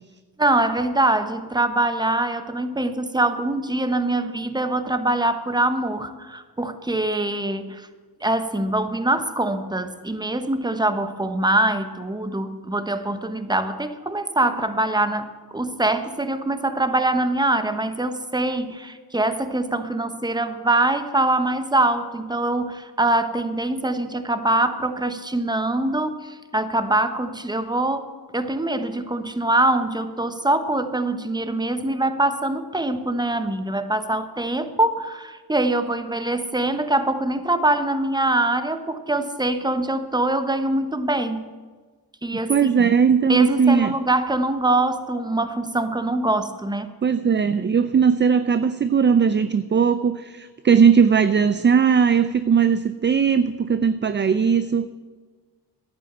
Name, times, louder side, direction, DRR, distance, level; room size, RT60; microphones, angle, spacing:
voice 1, 0.4-7.9 8.2-28.0 28.3-41.5 42.2-42.9 43.3-46.9, right 2 dB, 10° right, 10 dB, 1.1 m, -23 dB
voice 2, 42.5-43.9 47.0-54.9, right 6 dB, 25° right, 12 dB, 0.5 m, -18 dB
11.0 x 8.9 x 7.9 m, 1.4 s
cardioid pair, 65°, 41 cm